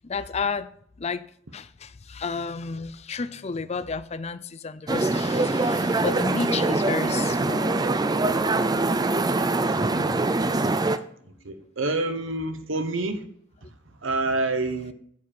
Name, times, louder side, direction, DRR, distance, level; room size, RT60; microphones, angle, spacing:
voice 1, 0.0-0.7 1.0-1.3 1.5-7.8 10.9-11.0, left 5 dB, 35° left, 0.5 m, -32 dB
sound 1, 4.9-11.0, right 2 dB, 20° right, 0.5 m, -23 dB
voice 2, 9.7-10.3 11.2-13.2 13.9-14.9, right 2 dB, 85° right, 1.0 m, -28 dB
9.5 x 7.5 x 4.3 m
head